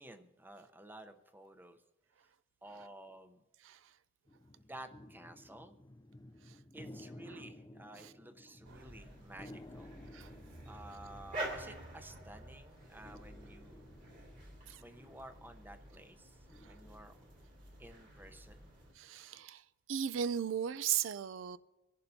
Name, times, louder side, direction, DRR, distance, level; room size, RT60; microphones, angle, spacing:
voice 1, 0.0-1.8 2.2-2.3 2.6-3.4 4.5-5.8 6.7-9.9 10.6-13.8 14.8-17.2 17.8-18.7, right 1 dB, 10° right, 0.8 m, -53 dB
sound 1, 4.3-12.4 12.7-19.4, left 1 dB, 20° left, 0.5 m, -56 dB
sound 2, 8.6-18.9, right 1 dB, 50° right, 2.7 m, -49 dB
voice 2, 19.0-19.6 19.9-21.6, right 8 dB, 85° right, 0.4 m, -36 dB
25.5 x 11.0 x 2.7 m
head